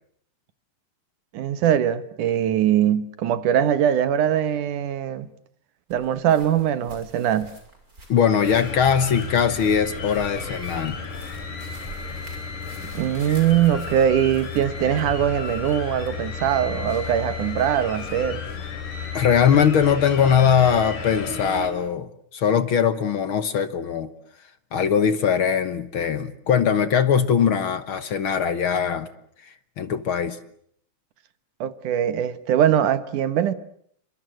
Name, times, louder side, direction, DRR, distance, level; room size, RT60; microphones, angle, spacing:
voice 1, 1.3-5.3 5.9-7.5 12.9-18.4 31.6-33.5, right 10 dB, 85° right, 2.9 m, -22 dB
Steps on ground, 5.9-19.2, right 2 dB, 25° right, 6.9 m, -49 dB
voice 2, 8.1-11.0 19.1-24.1 24.7-29.1 29.8-30.4, left 7 dB, 55° left, 1.7 m, -21 dB
sound 1, 8.4-21.7, left 5 dB, 80° left, 5.5 m, -33 dB
29.0 x 25.5 x 7.7 m
omnidirectional pair, 3.5 m